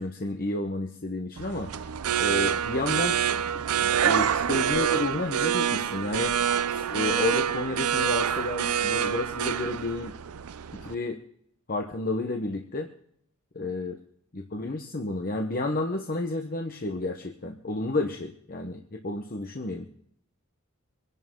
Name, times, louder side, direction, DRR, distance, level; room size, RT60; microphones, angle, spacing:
voice 1, 0.0-1.7 2.2-3.2 3.5-6.4 6.7-10.1 10.8-11.2 11.7-12.9 13.5-14.0 14.3-19.9, left 2 dB, 40° left, 3 dB, 1.1 m, -31 dB
sound 1, 1.4-10.9, right 8 dB, 85° right, 0.5 m, -27 dB
25.5 x 11.0 x 3.8 m, 0.69 s
head